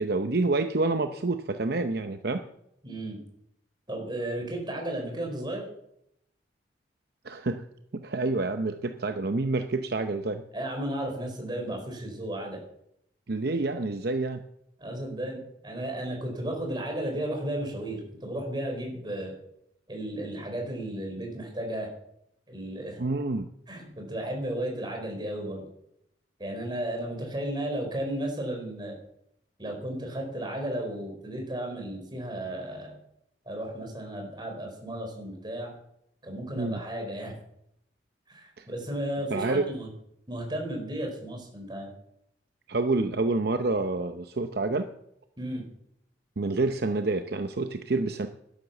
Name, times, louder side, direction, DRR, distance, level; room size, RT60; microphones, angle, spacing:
voice 1, 0.0-2.5 7.2-7.6 7.9-10.4 13.3-14.4 23.0-23.5 36.6-36.8 38.6-38.7 39.3-39.7 42.7-44.9 46.4-48.3, right 3 dB, 60° right, 8 dB, 0.7 m, -28 dB
voice 2, 2.8-3.2 3.9-5.7 10.5-12.6 14.8-19.3 19.9-21.9 22.5-23.0 23.7-25.7 26.4-28.9 29.6-33.0 33.5-35.7 36.2-37.4 38.3-39.9 40.3-41.9 45.4-45.6, right 1 dB, 25° right, 1 dB, 4.4 m, -34 dB
12.0 x 10.5 x 7.1 m, 0.76 s
head